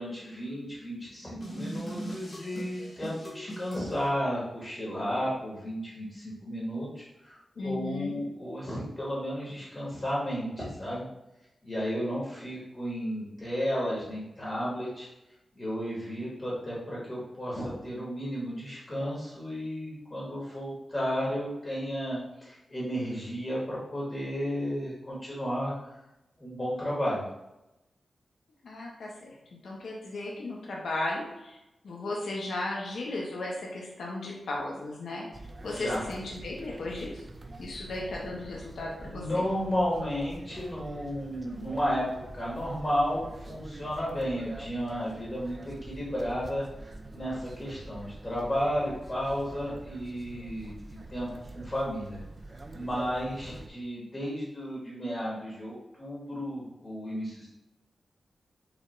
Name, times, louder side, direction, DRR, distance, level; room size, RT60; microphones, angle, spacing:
voice 1, 0.0-11.1 11.6-15.1 15.5-25.9 26.4-27.2 35.7-36.0 39.0-42.0 42.3-52.2 52.7-57.5, equal, 30° left, -6 dB, 1.3 m, -33 dB
sound 1, 1.4-4.0, equal, 45° left, 1.3 m, -39 dB
voice 2, 7.6-8.2 28.6-29.4 29.6-35.3 35.6-37.2 37.6-39.4, left 2 dB, 80° left, -3 dB, 0.8 m, -35 dB
sound 2, 35.3-53.7, right 2 dB, 30° right, 0.3 m, -45 dB
4.9 x 2.5 x 3.1 m, 0.93 s
wide cardioid pair, 120°, 0 cm